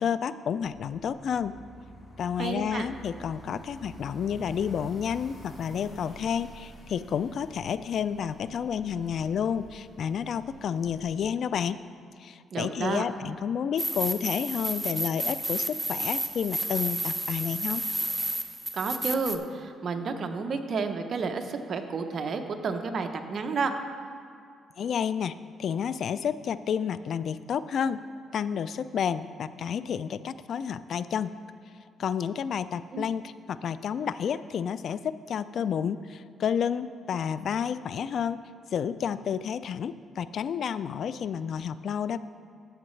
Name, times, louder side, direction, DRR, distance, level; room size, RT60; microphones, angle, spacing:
voice 1, 0.0-1.6 2.2-11.8 12.2-17.9 24.8-28.0 28.3-31.3 32.0-38.4 38.7-42.2, left 7 dB, 60° left, 15 dB, 0.3 m, -30 dB
sound 1, 0.6-11.0, equal, 35° left, 2.2 m, -49 dB
voice 2, 2.4-2.9 12.5-13.0 18.7-23.7 32.9-33.0, right 4 dB, 55° right, 6 dB, 0.8 m, -31 dB
sound 2, 13.8-19.4, right 1 dB, 10° right, 0.6 m, -31 dB
13.0 x 8.0 x 3.2 m, 2.2 s
cardioid pair, 90°, 0 cm